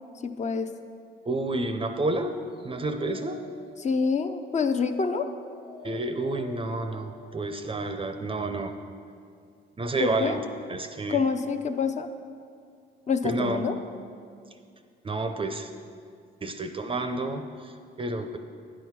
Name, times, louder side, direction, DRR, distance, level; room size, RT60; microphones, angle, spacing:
voice 1, 0.2-0.7 3.8-5.3 10.0-10.4 11.1-12.1 13.1-13.7, left 5 dB, 35° left, 8 dB, 0.6 m, -26 dB
voice 2, 1.3-2.4 2.6-3.4 5.8-8.8 9.8-10.4 10.7-11.2 13.2-13.7 15.0-15.9 16.4-18.4, right 2 dB, 25° right, 7 dB, 0.5 m, -30 dB
Dog, 2.4-7.9, left 4 dB, 70° left, 1.4 m, -50 dB
9.9 x 5.7 x 4.7 m, 2.3 s
cardioid pair, 90°, 20 cm